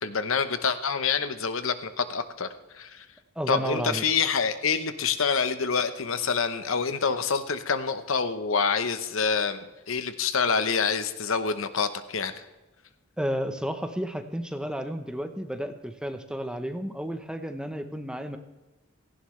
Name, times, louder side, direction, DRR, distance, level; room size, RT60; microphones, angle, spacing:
voice 1, 0.0-2.5 2.7-3.1 3.5-12.4, left 5 dB, 70° left, 10 dB, 1.0 m, -27 dB
voice 2, 3.4-4.0 13.2-18.4, equal, 5° right, 7 dB, 0.8 m, -32 dB
17.0 x 15.5 x 3.3 m, 1.1 s
head